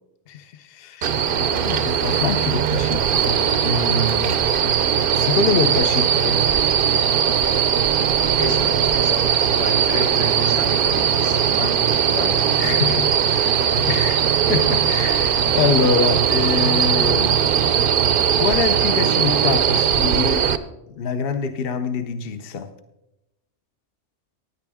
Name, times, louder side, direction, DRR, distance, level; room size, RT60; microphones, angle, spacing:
voice 1, 0.3-4.7 5.1-6.5 12.5-13.1 13.8-18.0 18.4-20.5 20.9-22.7, left 6 dB, 55° left, 9 dB, 0.9 m, -25 dB
sound 1, 1.0-20.6, right 8 dB, 55° right, 0.7 m, -19 dB
voice 2, 8.4-11.8 12.1-12.4 12.9-13.7, left 3 dB, 85° left, 2 dB, 2.1 m, -32 dB
16.0 x 9.8 x 3.5 m, 0.92 s
omnidirectional pair, 1.2 m